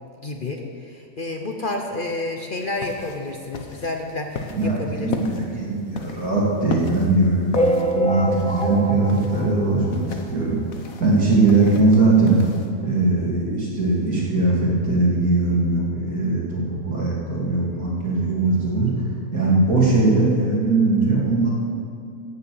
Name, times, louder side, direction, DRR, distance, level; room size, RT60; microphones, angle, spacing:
voice 1, 0.2-5.3, left 2 dB, 40° left, 3 dB, 0.9 m, -30 dB
sound 1, 2.6-12.7, left 4 dB, 70° left, 1.3 m, -36 dB
voice 2, 4.5-10.0 10.3-10.6 11.0-12.4 12.8-18.9 19.3-21.5, right 3 dB, 80° right, -5 dB, 3.3 m, -20 dB
sound 2, 7.5-10.4 10.9-11.0 11.2-11.3 11.6-11.7 12.6-12.7 13.1-13.2, equal, 10° left, 0.3 m, -25 dB
14.5 x 6.8 x 7.8 m, 2.3 s
omnidirectional pair, 1.5 m